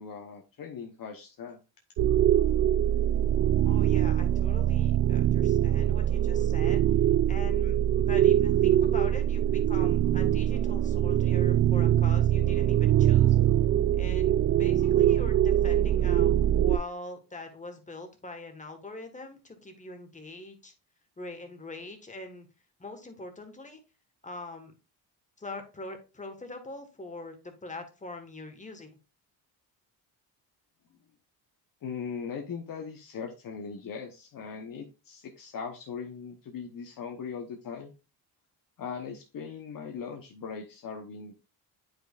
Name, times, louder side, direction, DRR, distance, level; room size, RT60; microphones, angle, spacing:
voice 1, 0.0-1.6 31.8-37.9 38.8-41.4, left 6 dB, 55° left, 3 dB, 1.0 m, -39 dB
sound 1, 2.0-16.8, right 11 dB, 45° right, 0.4 m, -23 dB
voice 2, 3.6-6.8 7.3-13.4 14.0-20.7 21.2-22.5 22.8-23.8 24.2-24.7 25.4-28.9, left 2 dB, 20° left, 5 dB, 1.5 m, -43 dB
8.9 x 5.2 x 2.4 m, 0.30 s
cardioid pair, 100°, 41 cm